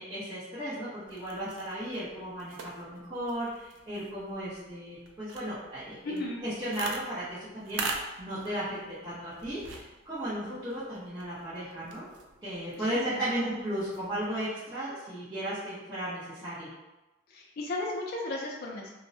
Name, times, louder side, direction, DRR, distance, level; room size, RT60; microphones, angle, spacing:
voice 1, 0.0-12.1 12.4-16.7, right 1 dB, 20° right, -13 dB, 0.8 m, -35 dB
sound 1, 1.0-14.4, right 3 dB, 75° right, 0.3 m, -44 dB
voice 2, 6.0-6.4 12.8-13.5 17.3-18.9, left 2 dB, 55° left, -2 dB, 0.4 m, -35 dB
2.6 x 2.0 x 2.6 m, 1.1 s
head